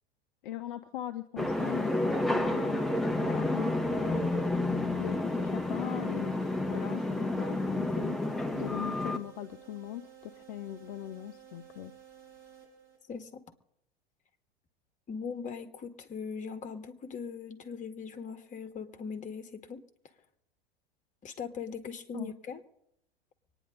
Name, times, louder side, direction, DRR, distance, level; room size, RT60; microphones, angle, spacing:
voice 1, 0.4-2.8 3.2-4.2 5.0-6.4 6.7-11.9 22.1-22.3, left 13 dB, 55° left, 8 dB, 0.9 m, -40 dB
sound 1, 1.4-9.2, left 2 dB, ahead, 1.3 m, -30 dB
sound 2, 1.6-13.3, right 9 dB, 40° right, 6.7 m, -54 dB
voice 2, 13.1-13.4 15.1-19.8 21.2-22.6, left 6 dB, 25° left, 7 dB, 1.8 m, -40 dB
25.0 x 9.9 x 3.9 m, 0.75 s
figure-of-eight pair, 90°, 31 cm